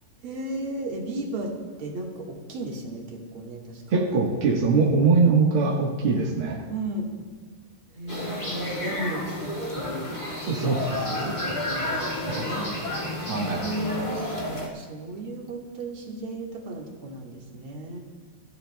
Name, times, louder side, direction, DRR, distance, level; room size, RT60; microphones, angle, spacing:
voice 1, 0.2-1.5 1.8-4.0 6.7-7.1 7.9-10.2 11.1-12.8 13.6-18.0, right 1 dB, 50° right, -2 dB, 1.8 m, -34 dB
voice 2, 3.9-6.7 10.5-11.4 12.3-12.4 13.3-13.6, right 4 dB, 70° right, -3 dB, 1.3 m, -22 dB
sound 1, 8.1-14.7, left 1 dB, 30° left, 0.8 m, -31 dB
19.5 x 13.5 x 2.2 m, 1.4 s
omnidirectional pair, 4.3 m